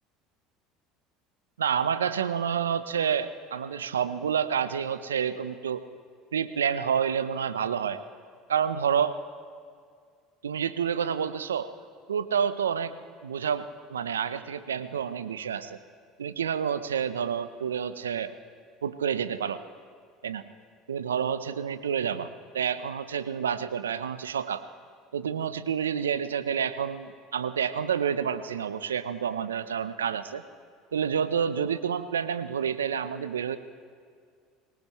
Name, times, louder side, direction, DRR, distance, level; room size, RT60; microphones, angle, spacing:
voice 1, 1.6-5.8 6.3-8.0 8.5-9.2 10.4-11.7 12.1-12.9 13.2-15.8 16.2-18.3 18.8-19.6 20.2-20.4 20.9-24.6 25.1-30.4 30.9-33.6, right 7 dB, 90° right, 12 dB, 0.7 m, -29 dB
24.0 x 18.0 x 3.1 m, 2.1 s
hypercardioid pair, 70°, 0 cm